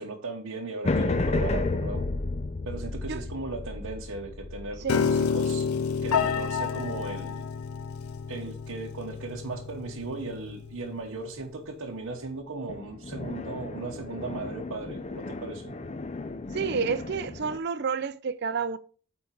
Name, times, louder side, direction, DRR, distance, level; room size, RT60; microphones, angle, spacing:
voice 1, 0.0-2.1 2.6-5.7 6.0-7.5 8.3-15.8, right 3 dB, 85° right, 0.9 m, -37 dB
sound 1, 0.8-7.3 12.7-17.6, left 2 dB, 30° left, 0.4 m, -33 dB
Piano, 4.9-11.1, left 6 dB, 85° left, 0.5 m, -30 dB
voice 2, 16.5-18.8, right 5 dB, 50° right, 0.4 m, -30 dB
8.6 x 3.9 x 4.5 m
head